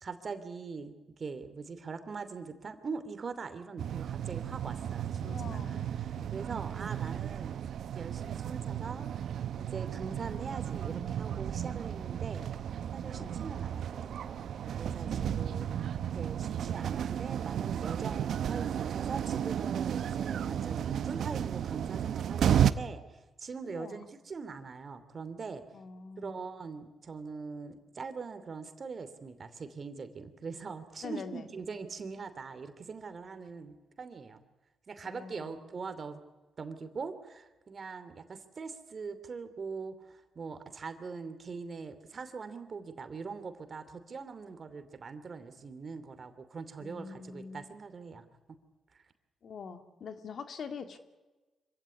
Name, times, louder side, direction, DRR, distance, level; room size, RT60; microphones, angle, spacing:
voice 1, 0.0-7.6 7.9-9.1 9.6-12.5 12.9-14.5 14.8-15.7 16.1-25.6 26.2-34.4 34.9-36.2 36.6-48.2 48.9-49.0, right 5 dB, 50° right, 10 dB, 2.8 m, -42 dB
sound 1, 3.8-22.7, right 9 dB, 70° right, 0.8 m, -33 dB
voice 2, 5.2-5.9 13.2-13.4 15.0-15.8 23.7-24.0 25.7-26.5 31.0-31.5 35.0-35.7 46.8-47.7 49.4-51.0, left 5 dB, 65° left, 8 dB, 2.2 m, -44 dB
25.5 x 16.0 x 9.7 m, 1.2 s
supercardioid pair, 55°, 0 cm